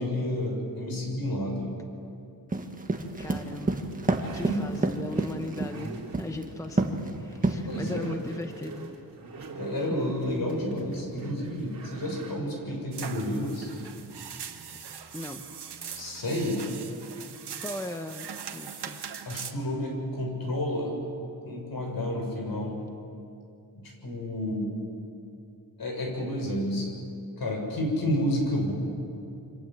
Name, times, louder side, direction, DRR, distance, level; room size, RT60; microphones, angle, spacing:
voice 1, 0.0-1.7 4.2-4.6 7.7-8.1 9.6-13.7 15.9-16.6 19.2-21.0 21.4-22.8 23.7-24.7 25.8-26.9 27.4-28.7, left 1 dB, 60° left, 1 dB, 7.0 m, -30 dB
sound 1, 2.5-5.8 6.1-6.5 6.8-7.1 7.4-8.0, right 2 dB, 20° right, 1.6 m, -27 dB
sound 2, 2.9-16.9, right 3 dB, 55° right, 3.8 m, -45 dB
voice 2, 3.2-3.9 4.3-8.9 9.8-9.9 15.1-15.5 17.6-19.0, left 1 dB, 10° left, 6 dB, 0.9 m, -38 dB
sound 3, 12.9-19.5, right 7 dB, 75° right, 1.7 m, -41 dB
28.0 x 25.5 x 7.7 m, 2.6 s
wide cardioid pair, 170°, 40 cm